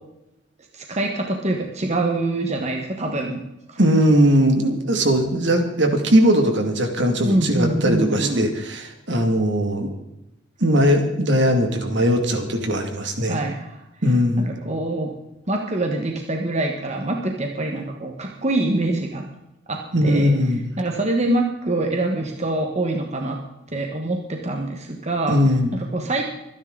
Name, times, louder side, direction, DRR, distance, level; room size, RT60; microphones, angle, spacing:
voice 1, 0.7-3.4 3.7-3.8 7.2-8.5 13.3-13.8 14.4-15.1 15.5-19.2 19.7-20.3 20.8-23.4 23.7-25.4 25.7-26.2, right 2 dB, 35° right, 2 dB, 1.5 m, -25 dB
voice 2, 3.8-10.0 10.6-13.4 14.0-14.4 19.9-20.6 25.3-25.7, equal, 60° right, 4 dB, 2.4 m, -19 dB
25.0 x 10.5 x 4.0 m, 0.89 s
head